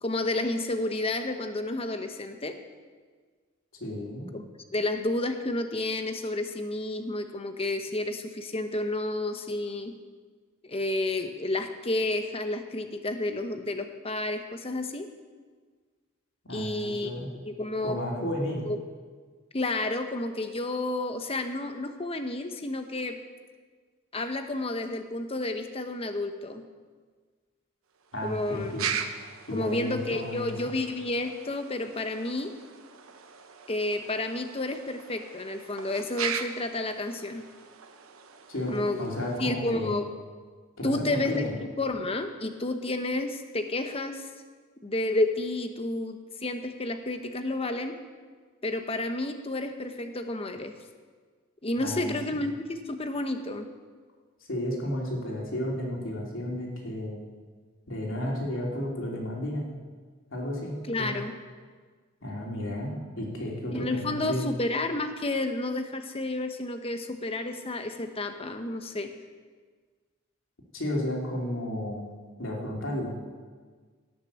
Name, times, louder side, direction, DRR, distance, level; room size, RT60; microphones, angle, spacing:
voice 1, 0.0-2.6 4.3-4.4 4.7-9.9 10.6-15.1 16.5-17.1 17.4-18.0 18.6-18.8 19.5-23.2 24.1-26.6 28.2-28.8 29.5-32.5 33.7-37.4 38.7-39.1 39.4-40.1 40.8-41.5 41.8-44.3 44.8-47.9 48.6-50.7 51.6-53.7 60.9-61.3 63.7-69.1, left 2 dB, 30° left, 7 dB, 0.9 m, -31 dB
voice 2, 3.8-4.3 16.4-17.3 17.8-18.6 28.1-28.9 29.5-30.7 38.5-40.0 40.8-41.5 51.8-52.5 54.5-57.2 57.9-59.6 60.3-61.1 62.2-64.5 70.7-72.1 72.4-73.1, left 1 dB, 70° left, -2 dB, 3.1 m, -33 dB
sound 1, 28.0-39.5, right 7 dB, 85° right, 1.0 m, -40 dB
17.5 x 6.7 x 7.1 m, 1.5 s
head